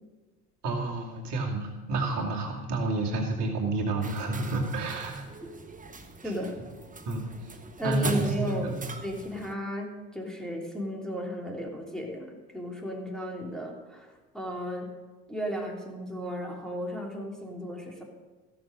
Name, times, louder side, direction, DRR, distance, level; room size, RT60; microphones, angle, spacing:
voice 1, 0.6-5.1 7.1-7.3 7.8-8.8, right 2 dB, 60° right, 0 dB, 2.5 m, -29 dB
sound 1, 4.0-9.5, right 3 dB, 15° right, 1.2 m, -41 dB
voice 2, 6.2-6.6 7.8-14.1 14.3-14.9 15.3-18.0, equal, ahead, -2 dB, 3.1 m, -34 dB
15.0 x 7.0 x 5.2 m, 1.3 s
hypercardioid pair, 65°, 45 cm